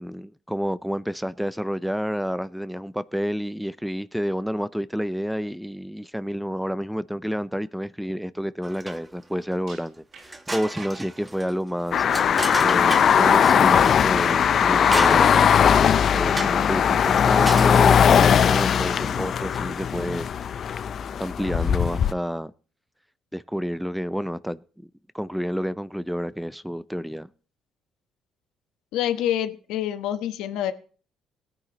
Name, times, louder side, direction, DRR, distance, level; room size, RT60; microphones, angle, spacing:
voice 1, 0.0-12.1 12.6-15.4 16.1-20.8 21.2-22.5 23.3-24.9 25.1-27.3, equal, ahead, 0.5 m, -29 dB
sound 1, 8.6-9.2 9.7-9.8 10.2-13.3 13.8-15.6 16.4-16.7 17.2-17.8, right 2 dB, 20° right, 1.4 m, -33 dB
sound 2, 9.7-11.6 12.2-12.3 17.3-18.1 19.6-19.7, right 5 dB, 65° right, 5.6 m, -46 dB
sound 3, 11.9-22.1, left 8 dB, 55° left, 0.5 m, -19 dB
voice 2, 28.9-30.7, left 11 dB, 85° left, 1.1 m, -26 dB
17.5 x 9.7 x 3.0 m
cardioid pair, 95°, 0 cm